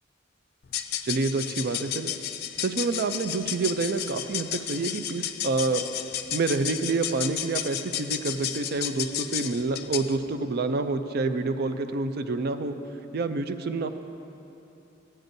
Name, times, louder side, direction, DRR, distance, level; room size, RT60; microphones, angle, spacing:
sound 1, 0.6-10.2, left 11 dB, 50° left, 0.4 m, -33 dB
voice 1, 1.0-2.1 2.6-5.8 6.3-12.8 13.1-13.9, right 3 dB, 55° right, 9 dB, 0.4 m, -28 dB
15.5 x 8.8 x 2.6 m, 3.0 s
head